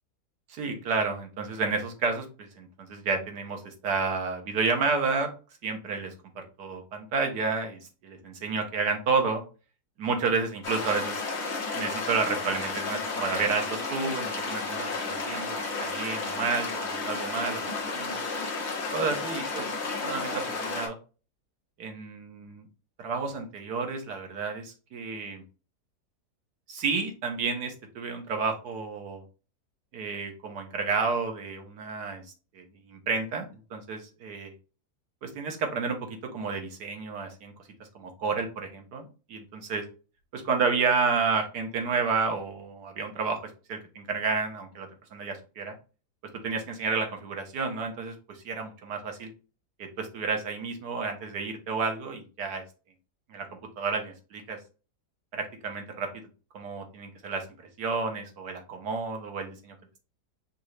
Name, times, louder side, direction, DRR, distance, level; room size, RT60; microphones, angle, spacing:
voice 1, 0.5-5.3 5.6-9.4 10.0-11.1 11.7-17.6 17.9-18.2 18.9-21.0 21.8-22.7 23.0-25.4 26.7-29.2 29.9-32.2 32.5-34.5 35.2-37.5 37.9-39.8 40.3-43.4 43.7-45.7 46.4-49.3 49.8-52.6 53.3-53.5 53.8-54.6 55.3-56.1 56.5-57.4 57.8-59.7, right 4 dB, 75° right, 4 dB, 1.6 m, -31 dB
sound 1, 10.6-20.9, left 3 dB, 45° left, 1.3 m, -32 dB
5.4 x 2.6 x 3.1 m, 0.34 s
omnidirectional pair, 1.7 m